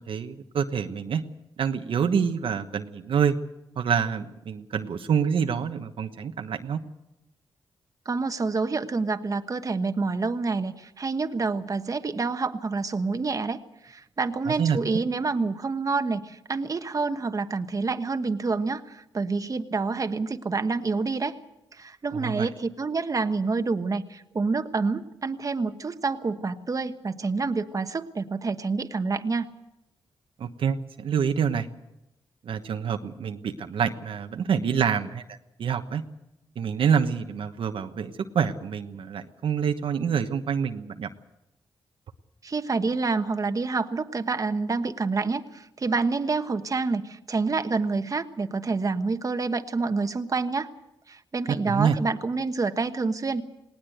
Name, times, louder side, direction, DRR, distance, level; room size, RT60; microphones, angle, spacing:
voice 1, 0.1-1.2 1.6-3.4 3.8-6.8 14.5-15.0 22.1-22.5 30.4-31.7 32.4-36.0 36.6-41.1 51.5-52.0, right 7 dB, 75° right, 7 dB, 1.2 m, -27 dB
voice 2, 8.0-21.4 21.7-29.5 42.4-50.7 51.1-53.4, right 4 dB, 40° right, 8 dB, 1.3 m, -28 dB
19.5 x 18.5 x 8.0 m, 0.90 s
cardioid pair, 75°, 9 cm